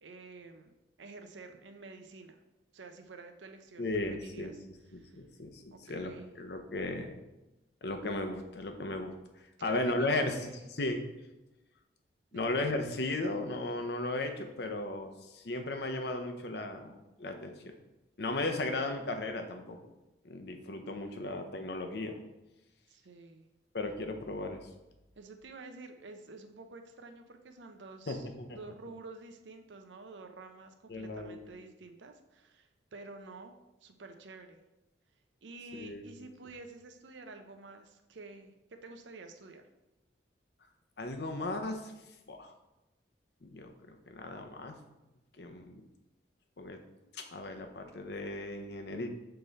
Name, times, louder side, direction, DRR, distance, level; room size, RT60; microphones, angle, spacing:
voice 1, 0.0-0.7 1.0-2.4 2.7-4.5 4.9-5.2 5.7-6.4 9.6-10.7 12.3-12.5 21.2-21.3 22.9-23.5 25.2-28.3 28.6-34.6 35.4-39.6, right 3 dB, 80° right, 6 dB, 0.6 m, -50 dB
voice 2, 3.8-4.5 4.9-7.2 7.8-9.1 9.6-11.1 12.3-17.5 18.2-19.8 20.2-22.2 23.7-24.6 28.1-28.6 30.9-31.4 35.8-36.1 41.0-41.9 42.3-42.5 43.4-43.7 44.1-44.7 45.4-45.8 46.6-46.8 47.1-49.1, left 2 dB, 60° left, 5 dB, 0.7 m, -36 dB
6.8 x 3.8 x 4.0 m, 0.99 s
head